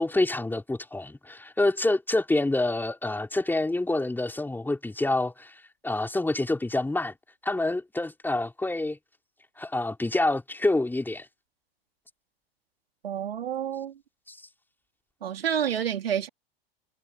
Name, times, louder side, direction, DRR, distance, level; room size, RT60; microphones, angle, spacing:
voice 1, 0.0-5.5 5.8-7.1 7.4-9.0 9.6-11.3 14.3-14.4, left 2 dB, 5° left, 4.0 m, -27 dB
voice 2, 13.0-13.9 15.2-16.3, right 9 dB, 70° right, 3.7 m, -29 dB
figure-of-eight pair, 90°, 31 cm